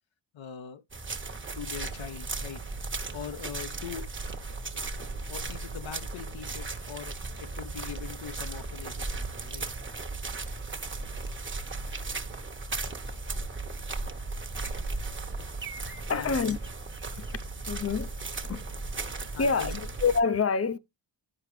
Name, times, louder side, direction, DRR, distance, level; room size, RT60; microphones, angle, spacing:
voice 1, 0.3-0.8 1.6-2.6 3.1-4.0 4.7-9.7 16.1-16.5 19.3-19.9, left 8 dB, 75° left, 0.9 m, -42 dB
sound 1, 0.9-20.2, right 3 dB, 25° right, 1.1 m, -36 dB
voice 2, 15.8-16.6 17.1-17.4 17.7-18.6 19.1-20.8, left 5 dB, 30° left, 0.6 m, -28 dB
11.0 x 4.7 x 3.2 m
cardioid pair, 95°, 47 cm